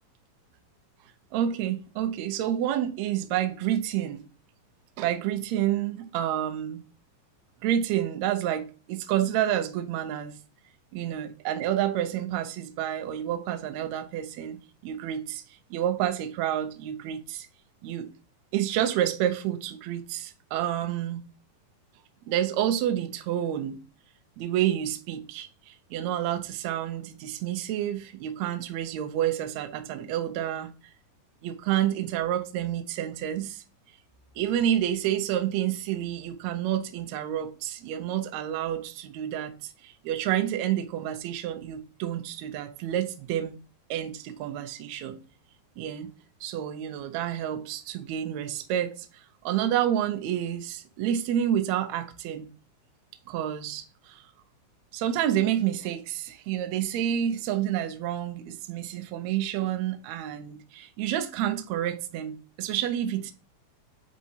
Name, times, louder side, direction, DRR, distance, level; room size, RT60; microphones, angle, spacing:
voice 1, 1.3-4.2 5.0-6.8 7.6-10.4 10.9-15.4 15.7-17.5 17.8-18.1 18.5-21.2 22.2-23.8 24.4-30.7 31.4-33.6 34.4-43.5 43.9-45.2 45.8-46.1 46.4-52.5 53.3-54.3 54.9-63.3, right 11 dB, 80° right, 1.6 m, -29 dB
9.1 x 4.6 x 2.8 m
omnidirectional pair, 3.9 m